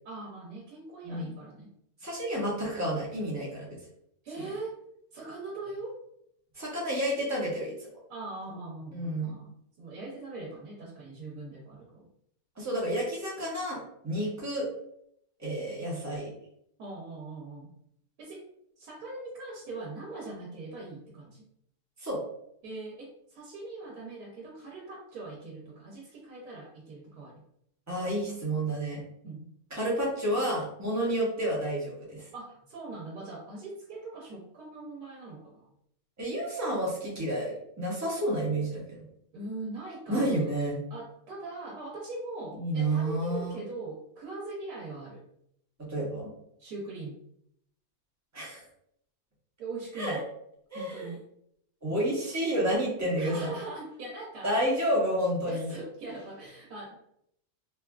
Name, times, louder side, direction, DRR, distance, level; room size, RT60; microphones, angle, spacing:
voice 1, 0.0-1.7 4.2-4.8 5.1-6.0 8.1-12.1 16.8-17.7 18.2-18.4 18.8-21.5 22.6-27.4 29.2-29.5 32.3-35.7 39.3-40.5 40.9-45.2 46.6-47.2 49.6-50.3 50.7-51.2 53.2-54.6 55.4-57.0, right 2 dB, 90° right, -3 dB, 1.2 m, -41 dB
voice 2, 2.0-3.7 6.5-7.7 8.9-9.3 12.6-14.7 15.4-16.3 22.0-22.2 27.9-29.0 29.7-32.2 36.2-38.8 40.1-40.8 42.6-43.6 45.9-46.3 48.3-48.6 50.0-50.2 50.7-51.1 51.8-53.5 54.4-55.7, right 1 dB, 15° right, -4 dB, 0.6 m, -30 dB
3.3 x 2.3 x 2.2 m, 0.72 s
omnidirectional pair, 1.6 m